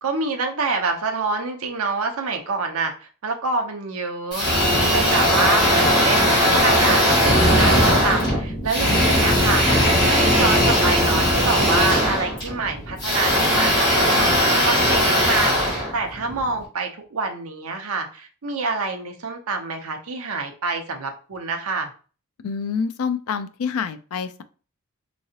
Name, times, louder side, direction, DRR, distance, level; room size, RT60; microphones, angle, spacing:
voice 1, 0.0-4.5 4.9-21.9, right 4 dB, 70° right, 4 dB, 0.7 m, -27 dB
sound 1, 4.3-16.5, equal, 20° left, 2.0 m, -19 dB
voice 2, 22.4-24.4, left 6 dB, 75° left, 12 dB, 0.4 m, -27 dB
3.7 x 3.1 x 2.8 m, 0.38 s
head